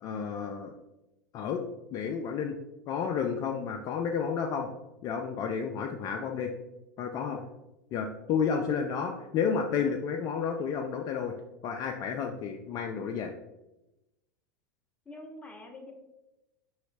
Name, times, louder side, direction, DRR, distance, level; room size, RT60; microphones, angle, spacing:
voice 1, 0.0-0.7 1.3-1.6 1.9-2.5 2.9-4.7 5.0-6.5 7.0-7.4 7.9-11.3 11.6-13.3, left 6 dB, 40° left, 3 dB, 0.4 m, -31 dB
voice 2, 8.7-9.0 15.1-15.9, left 2 dB, 15° left, 3 dB, 0.8 m, -46 dB
4.7 x 3.0 x 3.3 m, 0.96 s
hypercardioid pair, 95°, 10 cm